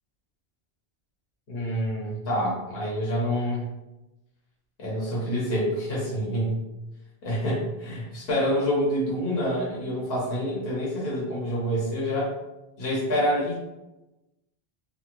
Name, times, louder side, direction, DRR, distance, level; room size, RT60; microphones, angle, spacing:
voice 1, 1.5-3.7 4.8-6.6 7.2-12.3 12.8-13.6, equal, 65° left, -5 dB, 1.1 m, -27 dB
2.9 x 2.2 x 3.0 m, 1.0 s
omnidirectional pair, 1.1 m